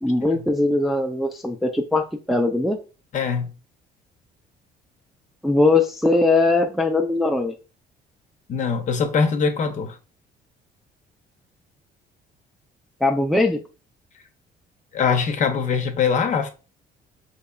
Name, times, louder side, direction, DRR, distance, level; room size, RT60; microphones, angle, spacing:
voice 1, 0.0-2.8 5.4-7.5 13.0-13.6, left 2 dB, ahead, 0.4 m, -20 dB
voice 2, 3.1-3.5 8.5-10.0 14.9-16.5, left 5 dB, 45° left, 0.7 m, -22 dB
4.2 x 2.8 x 2.3 m
cardioid pair, 110°, 17 cm